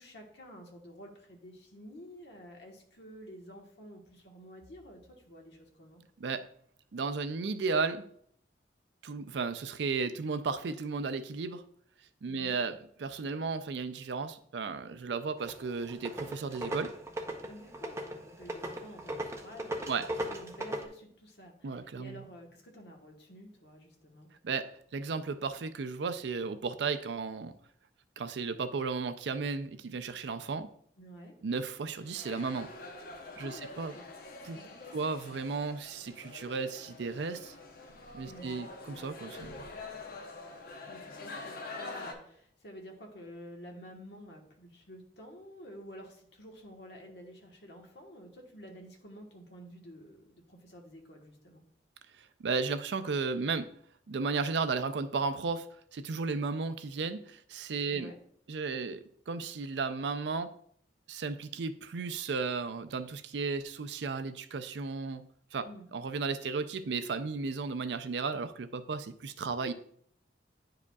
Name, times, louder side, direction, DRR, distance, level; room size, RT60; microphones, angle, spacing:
voice 1, 0.0-5.0 5.2-6.0 12.3-12.5 17.4-24.3 31.0-31.3 33.4-34.1 34.5-35.0 38.2-38.6 40.9-51.6 57.8-58.2 65.6-65.8, equal, 70° left, 1 dB, 1.3 m, -50 dB
voice 2, 6.9-8.1 9.0-11.6 12.2-16.9 19.9-20.1 21.6-22.2 24.4-27.5 28.2-30.7 31.4-32.7 33.4-33.9 34.4-34.6 34.9-37.5 38.1-39.7 52.4-53.7 54.1-55.7 55.9-58.1 58.5-60.5 61.1-65.2 65.5-65.7 65.9-69.7, right 4 dB, 70° right, 11 dB, 0.4 m, -34 dB
sound 1, 15.4-20.9, right 1 dB, 15° right, 0.5 m, -38 dB
sound 2, 31.9-42.1, left 3 dB, 55° left, 0.8 m, -46 dB
9.6 x 4.9 x 2.3 m, 0.65 s
head